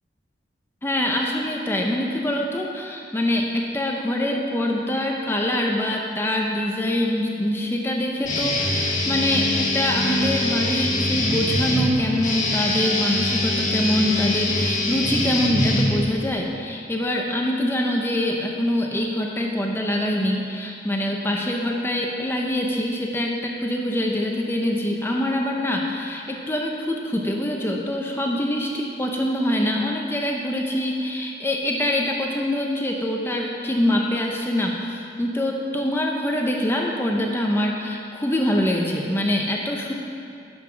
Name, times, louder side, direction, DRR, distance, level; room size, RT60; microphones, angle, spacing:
voice 1, 0.8-39.9, left 1 dB, 15° left, 0 dB, 0.6 m, -24 dB
Guitar, 8.2-16.3, left 1 dB, 45° left, 1.6 m, -23 dB
10.5 x 5.8 x 6.1 m, 2.6 s
head